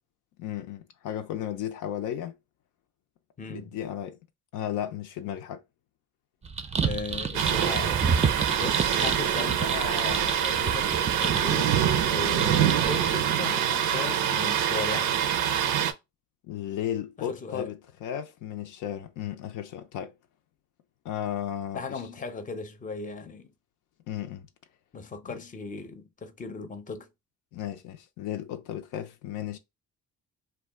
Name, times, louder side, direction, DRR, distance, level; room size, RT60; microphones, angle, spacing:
voice 1, 0.4-2.4 3.5-4.2 4.5-5.6 16.4-20.1 21.0-22.0 24.1-24.5 25.3-25.4 27.5-29.6, left 10 dB, 80° left, 0.5 m, -34 dB
voice 2, 3.4-3.7 6.6-7.9 8.5-11.7 12.1-15.1 17.2-17.7 21.7-23.5 24.9-27.1, left 4 dB, 25° left, 0.6 m, -37 dB
sound 1, 6.4-13.1, right 5 dB, 20° right, 0.4 m, -30 dB
Thunder, 7.3-15.9, right 9 dB, 90° right, 0.5 m, -25 dB
2.3 x 2.2 x 3.4 m
cardioid pair, 90°, 30 cm